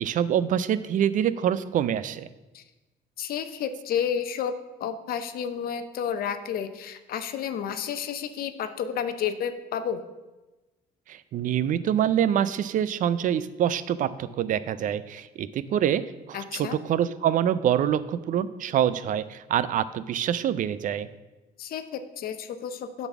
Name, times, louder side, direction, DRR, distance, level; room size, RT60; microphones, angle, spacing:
voice 1, 0.0-2.3 11.1-21.1, right 10 dB, 50° right, 16 dB, 0.4 m, -25 dB
voice 2, 3.2-10.0 16.3-16.8 21.6-23.1, left 8 dB, 60° left, 10 dB, 0.6 m, -31 dB
8.9 x 4.0 x 5.9 m, 1.1 s
cardioid pair, 110°, 17 cm